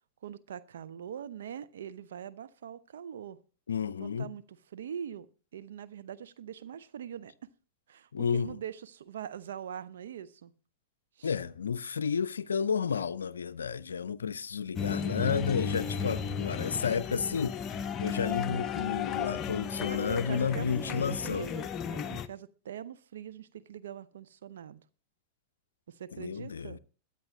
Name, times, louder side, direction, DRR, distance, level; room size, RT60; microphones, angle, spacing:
voice 1, 0.2-3.4 4.0-5.3 5.5-7.3 7.9-10.5 11.2-11.3 15.7-16.7 19.9-24.8 25.9-26.8, right 9 dB, 65° right, 0.7 m, -43 dB
voice 2, 3.7-4.3 8.1-8.6 11.2-17.6 18.0-21.5 26.1-26.8, left 6 dB, 70° left, 0.4 m, -31 dB
sound 1, 14.8-22.3, left 7 dB, 25° left, 0.7 m, -34 dB
21.5 x 9.1 x 3.0 m
figure-of-eight pair, 90°, 0 cm